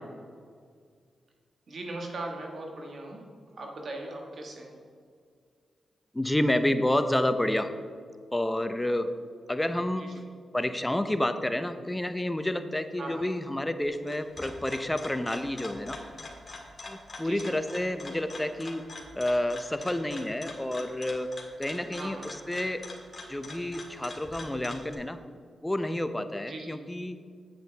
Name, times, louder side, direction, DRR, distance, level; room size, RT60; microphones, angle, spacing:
voice 1, 1.7-3.2 3.5-4.8 10.0-10.2 13.0-13.2 17.2-17.5 22.0-22.3 26.5-26.8, right 2 dB, 65° right, 1 dB, 1.5 m, -39 dB
voice 2, 6.1-7.7 8.3-9.1 9.5-10.1 10.5-16.0 16.8-18.8 19.1-21.3 21.6-22.8 23.3-25.2 25.6-27.2, left 1 dB, 15° left, 10 dB, 0.6 m, -29 dB
sound 1, 13.8-24.9, left 2 dB, 40° left, 1.7 m, -44 dB
8.3 x 7.8 x 3.4 m, 2.1 s
cardioid pair, 50°, 0 cm